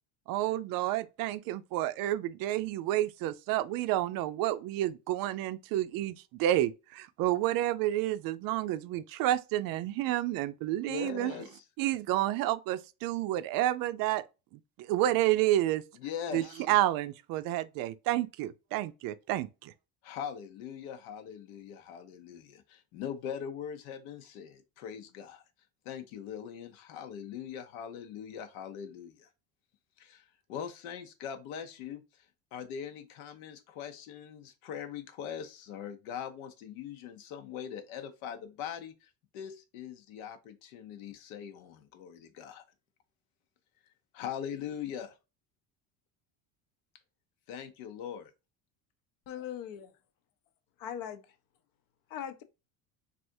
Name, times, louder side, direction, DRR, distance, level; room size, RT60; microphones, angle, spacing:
voice 1, 0.3-11.3 11.8-14.2 14.9-15.8 16.3-19.7, right 14 dB, 60° right, 0.5 m, -30 dB
voice 2, 10.9-11.6 16.0-16.7 20.0-25.4 25.8-29.3 30.0-32.0 32.5-42.6 44.1-45.1 47.5-48.3, left 8 dB, 90° left, 0.8 m, -41 dB
voice 3, 49.3-49.9 50.8-51.2 52.1-52.4, left 9 dB, 55° left, 0.6 m, -39 dB
3.4 x 2.5 x 2.6 m
cardioid pair, 125°, 40 cm